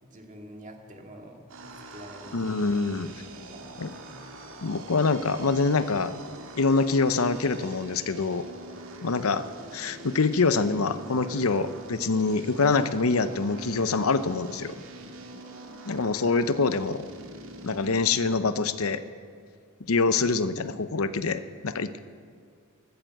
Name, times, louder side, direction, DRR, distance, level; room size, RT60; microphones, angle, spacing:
voice 1, 0.0-2.4 3.5-4.2, right 1 dB, 35° right, 2 dB, 2.2 m, -47 dB
sound 1, 1.5-18.2, right 1 dB, 70° right, 2.1 m, -44 dB
voice 2, 2.3-3.1 3.8-3.9 4.6-6.1 6.6-8.5 9.0-9.5 9.7-14.7 15.9-17.1 17.6-19.0 19.8-22.0, left 4 dB, 90° left, 12 dB, 0.7 m, -25 dB
14.0 x 13.0 x 7.7 m, 2.3 s
head